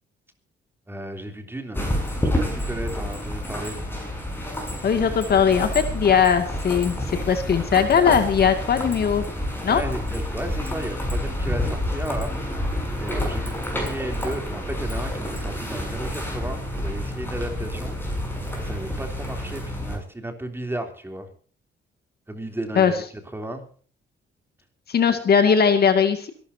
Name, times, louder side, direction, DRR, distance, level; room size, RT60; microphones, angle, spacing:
voice 1, 0.9-1.8 2.2-3.8 9.7-12.6 13.0-18.0 18.6-21.3 22.3-23.0 23.3-23.6, right 1 dB, 10° right, 5 dB, 3.3 m, -34 dB
sound 1, 1.7-20.0, left 1 dB, 10° left, 7.1 m, -29 dB
voice 2, 4.8-9.2 9.6-9.8 22.8-22.9 24.9-26.3, left 7 dB, 55° left, 7 dB, 2.3 m, -19 dB
25.0 x 13.0 x 2.8 m, 0.42 s
cardioid pair, 105°, 20 cm